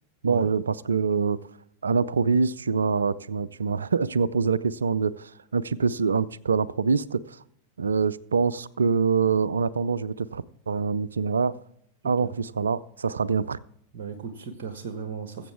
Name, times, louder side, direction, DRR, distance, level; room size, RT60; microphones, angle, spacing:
voice 1, 0.2-1.4 1.8-7.4 7.8-11.6 12.0-13.6, right 5 dB, 70° right, 0.4 m, -25 dB
voice 2, 13.9-15.5, right 6 dB, 50° right, 1.3 m, -36 dB
21.0 x 8.0 x 3.5 m
figure-of-eight pair, 90°, 0 cm